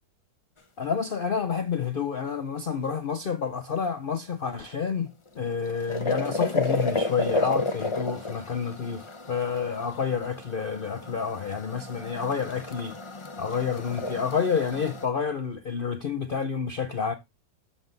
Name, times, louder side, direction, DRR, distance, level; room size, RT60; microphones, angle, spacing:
voice 1, 0.8-5.1 5.4-13.0 13.4-17.1, left 6 dB, 90° left, 0.4 m, -29 dB
sound 1, 5.3-15.1, left 3 dB, 30° left, 0.6 m, -32 dB
7.3 x 7.3 x 4.0 m
omnidirectional pair, 1.9 m